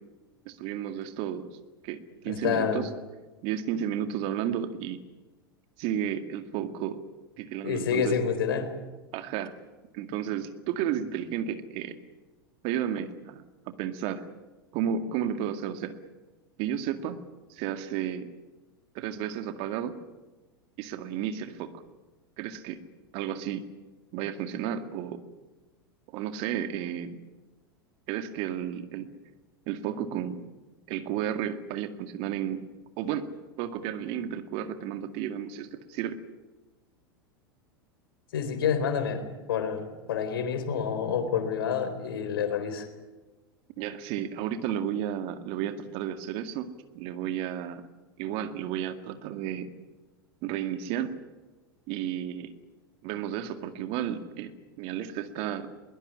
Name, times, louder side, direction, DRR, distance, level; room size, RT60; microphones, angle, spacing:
voice 1, 0.5-1.5 1.8-2.0 2.2-2.9 3.4-5.0 5.8-7.0 7.4-8.2 9.1-9.5 9.9-12.0 12.6-13.4 13.8-14.3 14.7-16.0 16.6-17.2 17.5-18.3 18.9-20.0 20.8-21.8 22.4-22.8 23.1-23.7 24.1-25.2 26.1-27.2 28.1-29.1 29.7-30.4 30.9-32.7 33.0-33.3 33.6-36.2 43.8-46.7 46.9-47.8 48.2-49.7 50.4-51.1 51.9-52.5 53.0-54.5 54.8-55.7, right 9 dB, 50° right, 9 dB, 2.1 m, -32 dB
voice 2, 2.3-2.8 7.6-8.7 38.3-42.9, left 7 dB, 70° left, 9 dB, 3.9 m, -28 dB
21.5 x 20.0 x 9.9 m, 1.2 s
figure-of-eight pair, 90°, 12 cm